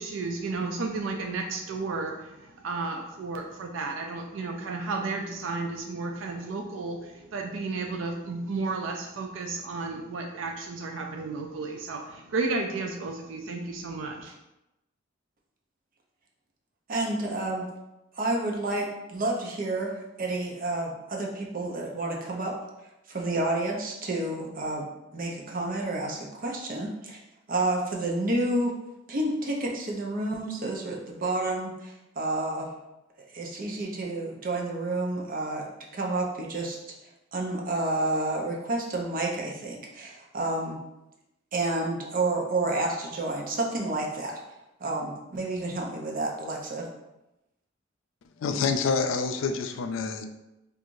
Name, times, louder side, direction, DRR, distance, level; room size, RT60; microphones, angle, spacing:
voice 1, 0.0-14.3, right 3 dB, 85° right, 2 dB, 0.4 m, -33 dB
voice 2, 16.9-17.7 18.2-22.5 23.1-27.2 27.5-28.7 29.1-32.8 33.3-35.6 35.9-36.8 37.3-40.8 41.5-44.3 44.8-46.9, right 2 dB, 45° right, 0 dB, 0.6 m, -30 dB
voice 3, 48.4-50.2, left 5 dB, 90° left, 7 dB, 0.4 m, -27 dB
4.5 x 2.4 x 2.5 m, 0.94 s
head